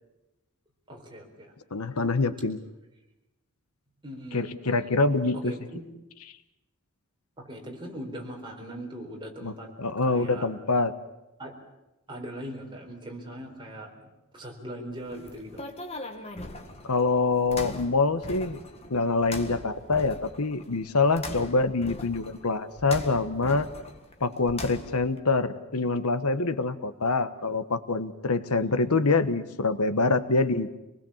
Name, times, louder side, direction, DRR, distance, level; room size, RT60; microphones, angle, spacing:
voice 1, 0.9-1.5 4.0-5.0 5.4-5.9 7.4-9.7 10.0-10.5 11.4-11.5 12.1-13.9 14.3-15.6 28.6-29.0, right 1 dB, 20° right, 0 dB, 4.3 m, -40 dB
voice 2, 1.7-2.6 4.3-5.6 9.4-9.5 9.8-10.9 16.8-18.6 18.9-23.7 24.2-30.7, left 3 dB, 90° left, 12 dB, 1.2 m, -25 dB
sound 1, 15.0-25.2, left 2 dB, 30° left, 1.7 m, -41 dB
26.0 x 20.0 x 7.3 m, 0.97 s
head